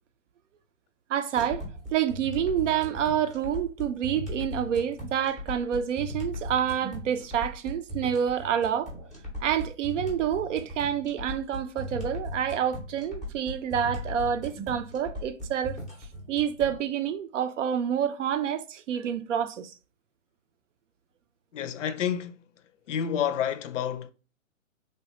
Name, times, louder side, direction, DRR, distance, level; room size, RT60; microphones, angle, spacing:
voice 1, 1.1-1.6 1.9-8.9 9.4-15.8 16.3-19.7, right 9 dB, 65° right, 0.5 m, -28 dB
sound 1, 1.4-16.8, left 1 dB, ahead, 0.5 m, -38 dB
voice 2, 21.5-22.4 22.9-24.1, left 9 dB, 65° left, 0.5 m, -29 dB
3.2 x 2.2 x 2.8 m
hypercardioid pair, 140°, 40 cm